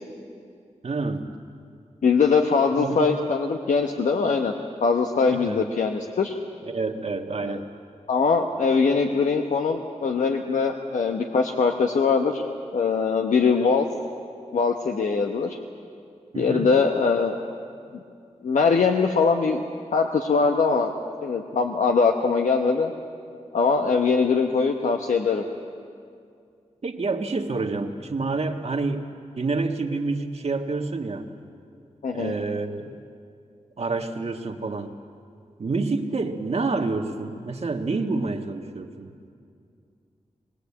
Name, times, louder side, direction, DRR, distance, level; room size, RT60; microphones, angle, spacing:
voice 1, 0.8-1.3 2.7-3.1 5.3-5.7 6.6-7.7 16.3-16.7 26.8-29.1 29.4-31.3 32.1-33.0 33.8-34.9 35.6-39.1, right 3 dB, 55° right, 4 dB, 1.7 m, -28 dB
voice 2, 2.0-4.5 4.8-6.4 7.4-7.6 8.1-12.4 12.7-13.9 14.5-15.6 16.4-17.4 18.4-19.6 19.9-20.9 21.2-22.9 23.5-25.4 32.0-32.3, left 5 dB, 85° left, 3 dB, 1.1 m, -22 dB
22.5 x 20.0 x 8.5 m, 2.3 s
wide cardioid pair, 80°, 13 cm